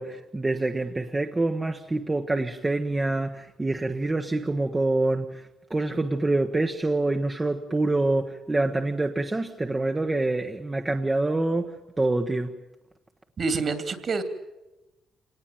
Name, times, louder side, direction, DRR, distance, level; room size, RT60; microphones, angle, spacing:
voice 1, 0.0-12.5, right 2 dB, 20° right, 1.2 m, -26 dB
voice 2, 13.4-14.2, right 4 dB, 45° right, 2.7 m, -27 dB
26.0 x 19.0 x 9.2 m
cardioid pair, 90°, 0 cm